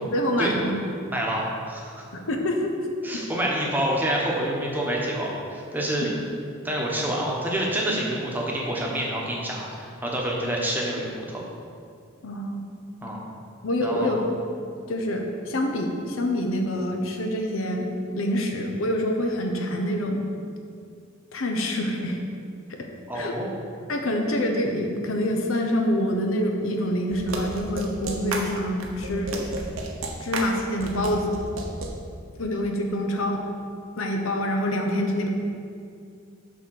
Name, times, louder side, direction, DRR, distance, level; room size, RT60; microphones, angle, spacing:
voice 1, 0.0-0.8 2.1-2.7 3.1-3.2 6.0-6.3 12.2-12.6 13.6-14.2 14.9-17.9 18.2-20.2 21.3-22.2 22.7-22.9 23.1-23.3 23.9-29.3 30.2-31.3 32.4-33.4 34.0-35.3, left 1 dB, 80° left, 3 dB, 0.9 m, -26 dB
voice 2, 1.1-2.1 3.0-6.1 6.6-11.4 13.0-13.2 13.8-14.1 23.1-23.5, right 1 dB, 10° right, -3 dB, 1.0 m, -27 dB
sound 1, 27.1-31.9, right 2 dB, 85° right, 0.9 m, -32 dB
6.3 x 5.0 x 6.4 m, 2.3 s
head